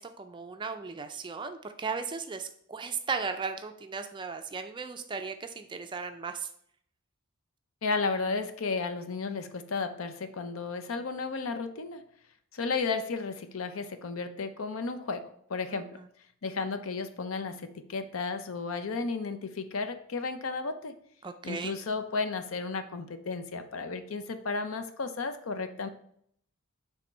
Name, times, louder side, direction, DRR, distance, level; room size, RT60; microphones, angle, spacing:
voice 1, 0.0-6.5 15.7-16.1 21.2-21.7, right 5 dB, 20° right, 7 dB, 0.4 m, -36 dB
voice 2, 7.8-12.0 12.5-15.9 16.4-20.9 21.4-25.9, left 4 dB, 75° left, 9 dB, 0.6 m, -33 dB
6.8 x 3.5 x 4.2 m, 0.67 s
head